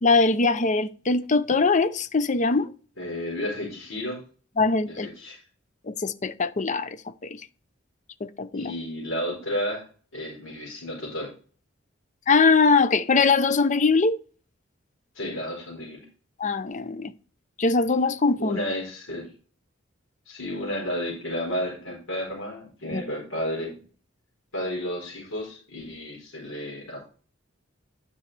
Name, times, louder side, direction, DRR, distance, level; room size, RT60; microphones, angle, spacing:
voice 1, 0.0-2.7 4.6-5.1 5.9-7.0 7.2-7.4 8.2-8.7 12.3-14.2 16.4-17.1 17.6-18.6 22.9-23.0, left 4 dB, 40° left, 0.6 m, -22 dB
voice 2, 3.0-4.2 4.9-5.4 8.5-9.8 10.1-11.3 15.1-16.0 18.4-19.3 20.3-23.8 24.5-27.1, equal, 85° left, 4.0 m, -32 dB
9.8 x 6.1 x 3.3 m
head